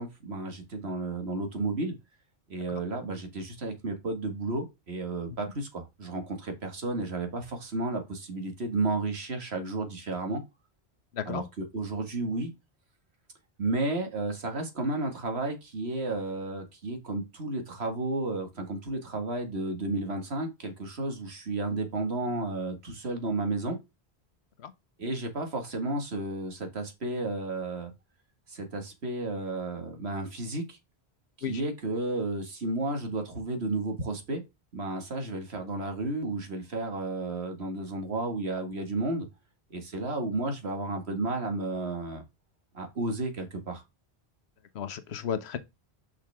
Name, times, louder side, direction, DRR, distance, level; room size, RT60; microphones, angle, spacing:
voice 1, 0.0-1.9 2.5-10.4 11.2-12.5 13.6-23.8 25.0-27.9 28.5-30.8 31.4-34.4 34.7-39.3 39.7-42.2 42.7-43.8, right 2 dB, 80° right, 2.1 m, -32 dB
voice 2, 44.8-45.6, left 8 dB, 85° left, 1.1 m, -33 dB
6.1 x 5.9 x 3.5 m
omnidirectional pair, 1.1 m